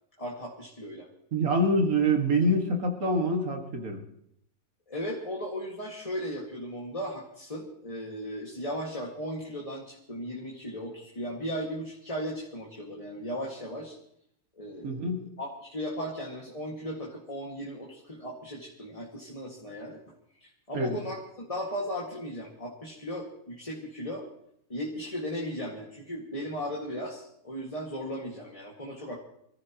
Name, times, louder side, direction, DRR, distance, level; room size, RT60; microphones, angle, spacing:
voice 1, 0.2-1.1 4.9-14.0 14.6-20.0 20.4-24.3 24.7-29.2, equal, 25° left, -3 dB, 2.1 m, -36 dB
voice 2, 1.3-4.0 14.8-15.3 20.7-21.0, right 1 dB, 80° right, 3 dB, 2.4 m, -25 dB
25.5 x 14.5 x 3.0 m, 0.74 s
omnidirectional pair, 1.5 m